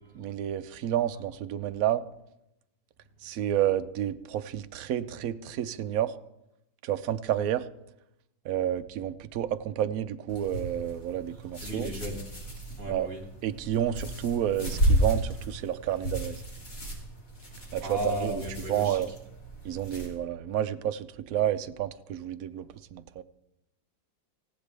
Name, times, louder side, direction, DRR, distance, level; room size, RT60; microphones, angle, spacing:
voice 1, 0.1-2.0 3.2-6.1 6.8-7.7 8.4-11.9 12.9-13.1 13.4-16.4 17.7-18.3 18.7-19.1 19.6-23.2, right 11 dB, 65° right, 10 dB, 0.9 m, -30 dB
sound 1, 10.3-20.1, right 1 dB, 45° left, 3.5 m, -33 dB
voice 2, 11.6-12.2 12.8-13.3 17.8-19.0, equal, 45° right, 2 dB, 2.8 m, -34 dB
18.5 x 16.0 x 3.4 m, 0.86 s
omnidirectional pair, 2.1 m